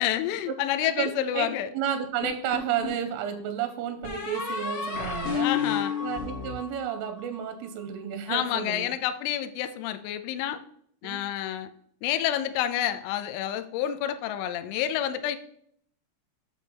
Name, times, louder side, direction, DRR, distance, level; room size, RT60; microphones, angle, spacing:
voice 1, 0.0-1.7 5.2-5.9 8.3-10.6 11.0-11.7 12.0-15.4, left 11 dB, 80° left, 8 dB, 3.0 m, -29 dB
voice 2, 0.9-5.5 6.0-8.9 11.0-11.2, right 9 dB, 90° right, 6 dB, 3.3 m, -31 dB
sound 1, 2.2-3.1 4.0-7.4, left 6 dB, 65° left, 4.0 m, -31 dB
8.3 x 6.2 x 4.1 m, 0.64 s
omnidirectional pair, 5.8 m